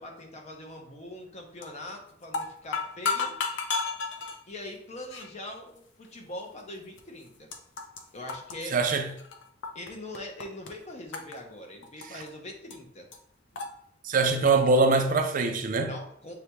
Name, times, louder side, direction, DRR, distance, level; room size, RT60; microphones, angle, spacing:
voice 1, 0.0-3.4 4.5-7.5 8.1-8.8 9.7-13.1 15.9-16.3, left 1 dB, 35° left, 0.8 m, -42 dB
sound 1, 1.6-1.9 2.2-4.4 5.1-5.3 6.0-6.1 7.0-7.1 7.3-8.0 8.3-9.9 10.1-10.7 11.1-12.3 12.7-12.8 13.1-13.2 13.5-13.7, left 4 dB, 75° left, 0.6 m, -32 dB
voice 2, 8.7-9.0 14.0-15.9, right 3 dB, 45° right, 0.4 m, -23 dB
6.7 x 2.3 x 3.0 m
head